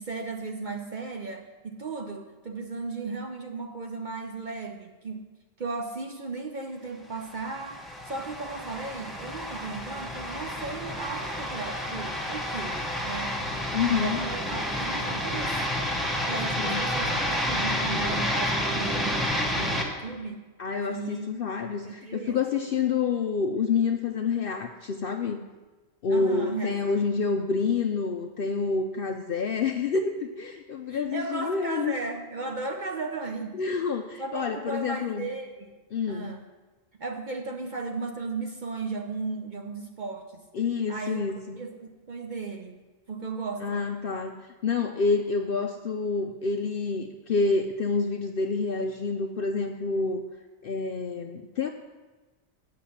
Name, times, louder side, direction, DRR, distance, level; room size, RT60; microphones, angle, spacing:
voice 1, 0.0-5.3 5.6-13.4 13.8-15.7 16.3-19.3 19.5-20.4 20.9-21.4 21.8-22.4 26.1-27.0 30.9-33.6 34.2-35.7 36.1-36.5 37.0-40.4 40.9-41.2 41.6-42.8 43.1-43.8, right 3 dB, 50° right, 4 dB, 0.6 m, -35 dB
sound 1, 7.3-19.8, left 1 dB, ahead, 0.9 m, -30 dB
voice 2, 13.7-14.2 16.6-16.9 20.6-25.4 26.0-32.0 33.5-35.3 35.9-36.4 40.5-41.6 43.6-50.2 50.6-51.7, left 4 dB, 65° left, 5 dB, 0.6 m, -28 dB
8.4 x 5.7 x 7.0 m, 1.2 s
omnidirectional pair, 1.4 m